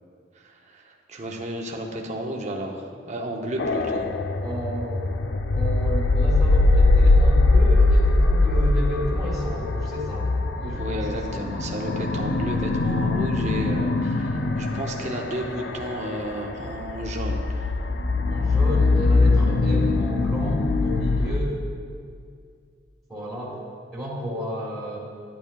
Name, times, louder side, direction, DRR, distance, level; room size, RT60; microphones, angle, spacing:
voice 1, 0.4-4.1 10.7-17.7, right 1 dB, 35° right, 0 dB, 0.7 m, -32 dB
sound 1, 3.6-21.4, left 2 dB, 60° left, 0.4 m, -22 dB
voice 2, 4.4-5.1 5.5-11.4 18.3-21.6 23.1-23.6 23.9-25.0, equal, ahead, -8 dB, 1.6 m, -32 dB
10.5 x 8.9 x 2.3 m, 2.2 s
head